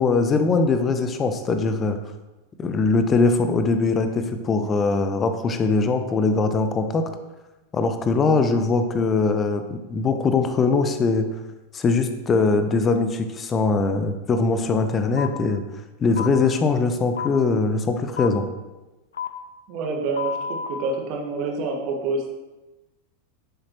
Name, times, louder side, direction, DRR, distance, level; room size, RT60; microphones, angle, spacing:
voice 1, 0.0-2.0 2.6-7.0 7.7-11.3 11.7-15.6 16.0-18.4, left 4 dB, 25° left, 8 dB, 0.8 m, -21 dB
sound 1, 15.2-15.3 16.2-16.3 17.2-17.3 18.2-18.3 19.1-19.3 20.1-20.7, left 7 dB, 65° left, 0.6 m, -29 dB
voice 2, 19.7-22.3, right 3 dB, 40° right, 1 dB, 1.7 m, -27 dB
10.5 x 7.4 x 3.1 m, 1.1 s
figure-of-eight pair, 90°, 0 cm